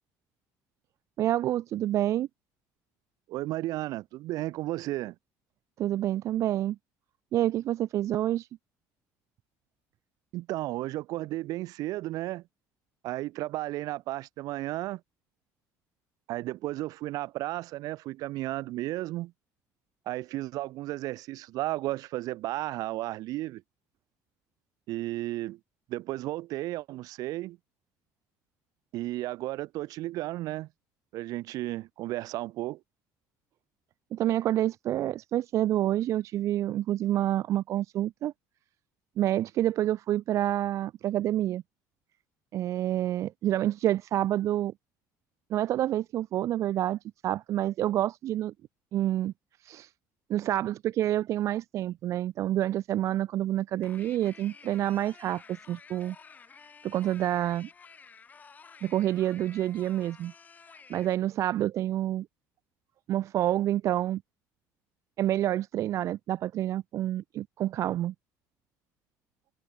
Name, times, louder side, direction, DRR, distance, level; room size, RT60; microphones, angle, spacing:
voice 1, 1.2-2.3 5.8-6.8 7.3-8.5 34.1-38.3 39.2-41.6 42.5-44.7 45.5-48.5 48.9-49.3 49.6-49.9 50.3-56.2 56.8-57.7 58.8-60.3 60.9-62.3 63.1-64.2 65.2-68.1, right 13 dB, 50° right, 0.4 m, -28 dB
voice 2, 3.3-5.2 10.3-12.4 13.0-15.0 16.3-19.3 20.1-23.6 24.9-25.6 25.9-27.6 28.9-30.7 31.1-32.8, right 17 dB, 65° right, 2.2 m, -33 dB
sound 1, 53.8-61.1, left 5 dB, 25° left, 8.0 m, -52 dB
cardioid pair, 135°, 7 cm